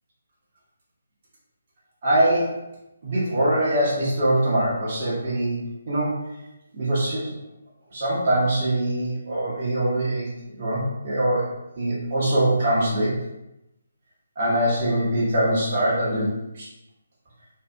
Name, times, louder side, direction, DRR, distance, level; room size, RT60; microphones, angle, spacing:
voice 1, 2.0-2.5 3.0-5.6 5.9-6.2 6.7-7.3 7.9-11.5 11.8-13.1 14.4-16.7, right 1 dB, 40° right, -8 dB, 0.8 m, -23 dB
2.6 x 2.4 x 2.2 m, 0.91 s
figure-of-eight pair, 145°, 0 cm